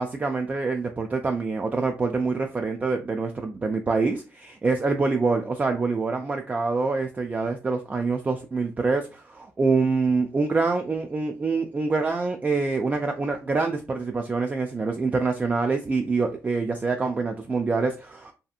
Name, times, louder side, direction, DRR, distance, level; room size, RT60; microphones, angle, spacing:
voice 1, 0.0-18.3, right 4 dB, 25° right, 4 dB, 0.3 m, -25 dB
2.7 x 2.5 x 2.3 m, 0.32 s
cardioid pair, 80°, 6 cm